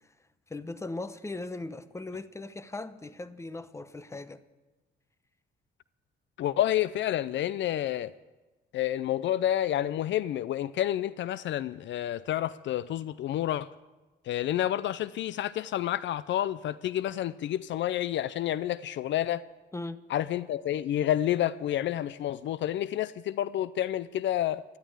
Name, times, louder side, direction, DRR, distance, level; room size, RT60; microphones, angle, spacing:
voice 1, 0.5-4.4 19.7-20.0, left 2 dB, 15° left, 0.9 m, -38 dB
voice 2, 6.4-8.1 8.7-13.7 14.3-19.4 20.1-24.6, left 12 dB, 65° left, 0.5 m, -29 dB
13.0 x 12.0 x 8.7 m
cardioid pair, 90°, 20 cm